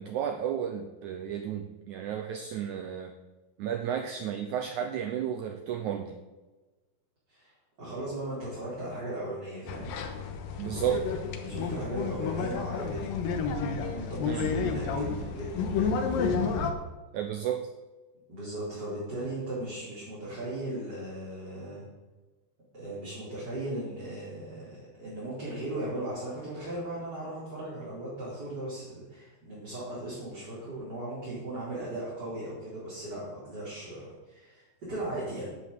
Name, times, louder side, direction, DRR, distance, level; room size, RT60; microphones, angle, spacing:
voice 1, 0.0-3.2 3.6-6.2 10.6-11.1 14.3-14.5 17.1-17.7, right 9 dB, 85° right, 7 dB, 1.7 m, -32 dB
voice 2, 7.8-9.9 11.3-13.1 13.9-16.4 18.3-21.8 22.7-35.5, right 1 dB, 25° right, -9 dB, 4.6 m, -37 dB
sound 1, 9.7-16.7, left 5 dB, 70° left, 2.7 m, -31 dB
10.5 x 8.4 x 8.1 m, 1.2 s
omnidirectional pair, 4.4 m